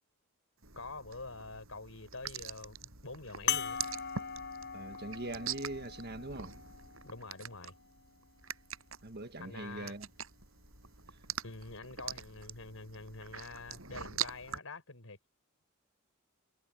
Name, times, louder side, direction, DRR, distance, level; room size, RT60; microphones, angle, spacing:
sound 1, 0.6-14.6, right 8 dB, 75° right, 6.7 m, -44 dB
voice 1, 0.7-3.8 7.0-7.7 9.4-9.9 11.4-15.2, left 3 dB, 75° left, 4.7 m, -46 dB
sound 2, 3.5-8.3 9.1-9.2 11.3-11.4, left 8 dB, 55° left, 7.6 m, -40 dB
voice 2, 4.7-6.6 9.0-10.1, right 2 dB, 50° right, 1.6 m, -42 dB
head